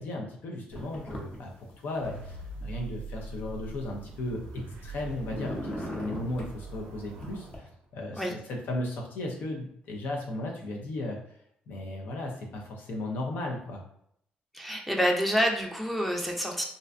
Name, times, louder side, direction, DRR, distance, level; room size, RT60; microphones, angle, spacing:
voice 1, 0.0-11.2 11.7-13.8, left 2 dB, 75° left, 0 dB, 0.5 m, -36 dB
sound 1, 0.7-1.4 1.7-2.6 3.2-4.9 5.1-6.5 7.1-7.6, equal, 35° left, 0.7 m, -39 dB
sound 2, 2.0-8.2, right 2 dB, 85° right, 0.4 m, -43 dB
voice 2, 14.5-16.6, equal, ahead, 1 dB, 0.5 m, -27 dB
2.5 x 2.1 x 2.4 m, 0.71 s
cardioid pair, 90°, 3 cm